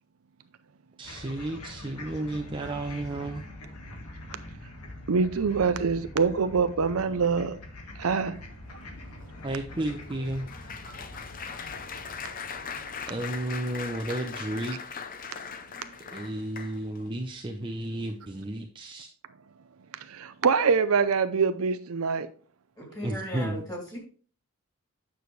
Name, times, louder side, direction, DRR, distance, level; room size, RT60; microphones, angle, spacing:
sound 1, 1.0-16.4, left 1 dB, 90° left, 1.7 m, -45 dB
voice 1, 1.0-3.4 9.4-10.5 13.1-14.8 16.1-19.1 23.0-23.6, right 1 dB, 20° right, 0.6 m, -33 dB
voice 2, 5.1-7.6 8.0-8.4 10.9-11.0 20.1-22.3, right 5 dB, 70° right, 0.5 m, -24 dB
Applause, 8.7-17.1 17.7-17.9 18.2-18.4, left 6 dB, 40° left, 0.6 m, -40 dB
voice 3, 22.8-24.0, equal, 15° left, 3.0 m, -37 dB
9.3 x 6.2 x 3.2 m
head